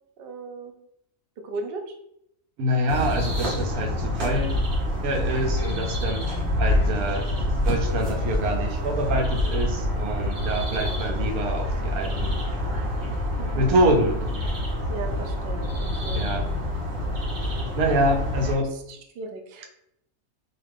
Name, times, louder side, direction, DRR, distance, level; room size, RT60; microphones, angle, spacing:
voice 1, 0.2-0.8 1.4-1.9 10.7-11.5 12.0-12.1 13.4-13.7 14.9-16.3 18.6-19.6, right 3 dB, 70° right, 3 dB, 0.5 m, -37 dB
voice 2, 2.6-4.6 5.0-6.2 6.6-12.4 13.5-14.2 16.1-16.5 17.7-18.7, right 1 dB, 85° right, 3 dB, 1.1 m, -26 dB
sound 1, 2.9-18.5, left 1 dB, 55° right, 1.1 m, -26 dB
2.4 x 2.4 x 3.3 m, 0.76 s
omnidirectional pair, 1.5 m